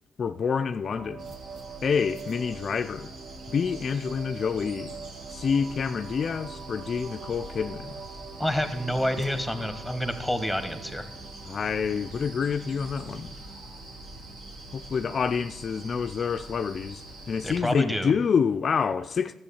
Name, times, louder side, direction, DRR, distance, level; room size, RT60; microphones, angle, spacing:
voice 1, 0.2-1.3 1.8-3.1 3.5-4.9 5.3-8.0 11.5-13.3 14.7-19.3, left 6 dB, 50° left, 0.4 m, -27 dB
sound 1, 0.9-17.8, right 5 dB, 50° right, 0.8 m, -45 dB
sound 2, 1.2-17.6, right 1 dB, 65° right, 2.1 m, -45 dB
voice 2, 8.4-11.1 17.4-18.1, left 1 dB, 5° right, 1.5 m, -28 dB
12.0 x 7.7 x 7.0 m
cardioid pair, 90°, 0 cm